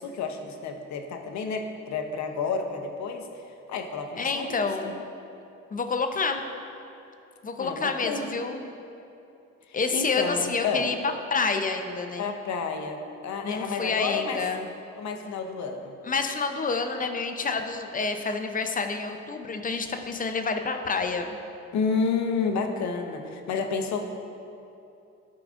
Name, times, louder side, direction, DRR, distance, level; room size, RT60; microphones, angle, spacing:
voice 1, 0.0-3.4 3.7-4.9 7.6-8.3 9.9-10.9 12.2-13.0 13.2-14.4 15.0-15.9 21.7-24.0, left 5 dB, 65° left, 5 dB, 0.8 m, -30 dB
voice 2, 4.2-4.9 5.7-6.4 7.4-8.7 9.7-11.0 11.3-12.3 13.4-14.7 16.0-21.4, left 4 dB, 30° left, 6 dB, 0.5 m, -28 dB
12.0 x 4.8 x 2.5 m, 2.8 s
cardioid pair, 90°, 30 cm